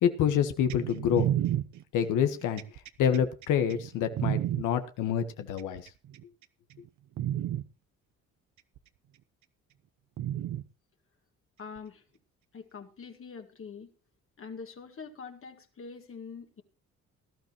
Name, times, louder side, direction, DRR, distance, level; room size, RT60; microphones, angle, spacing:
voice 1, 0.0-1.3 1.9-2.6 3.0-5.8, left 8 dB, 90° left, 8 dB, 1.4 m, -27 dB
sound 1, 0.7-4.6 5.6-6.2 6.7-6.9 7.2-7.6 8.8-8.9 10.2-10.6 11.8-11.9, right 12 dB, 70° right, 0.9 m, -31 dB
voice 2, 11.6-12.0 12.5-13.9 14.4-16.6, left 5 dB, 45° left, 5 dB, 1.9 m, -44 dB
18.5 x 12.0 x 3.1 m, 0.31 s
cardioid pair, 90°, 30 cm